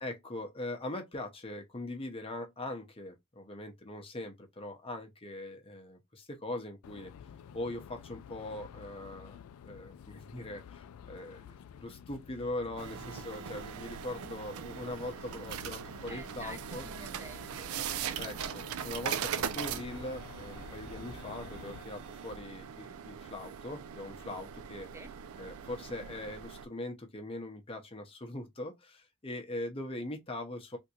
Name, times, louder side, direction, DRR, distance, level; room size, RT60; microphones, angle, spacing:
voice 1, 0.0-7.1 7.5-9.4 9.6-16.8 18.2-24.9 25.4-30.8, left 1 dB, 25° left, 0.7 m, -41 dB
sound 1, 6.8-21.8, left 8 dB, 75° left, 0.3 m, -51 dB
sound 2, 12.8-26.7, right 8 dB, 70° right, 0.4 m, -40 dB
voice 2, 16.1-18.2 24.9-25.1, right 2 dB, 10° right, 0.6 m, -49 dB
3.5 x 2.6 x 2.8 m
head